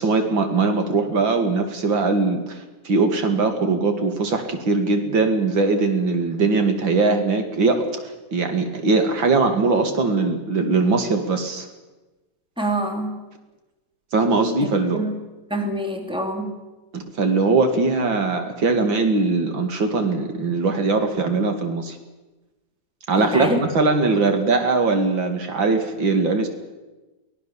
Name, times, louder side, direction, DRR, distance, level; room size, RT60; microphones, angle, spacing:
voice 1, 0.0-11.7 14.1-15.0 16.9-22.0 23.1-26.5, right 3 dB, 80° right, 6 dB, 2.9 m, -21 dB
voice 2, 12.6-13.2 14.9-15.2 15.5-16.5 23.2-23.6, right 1 dB, ahead, 3 dB, 2.8 m, -26 dB
24.0 x 18.0 x 7.1 m, 1.1 s
omnidirectional pair, 2.1 m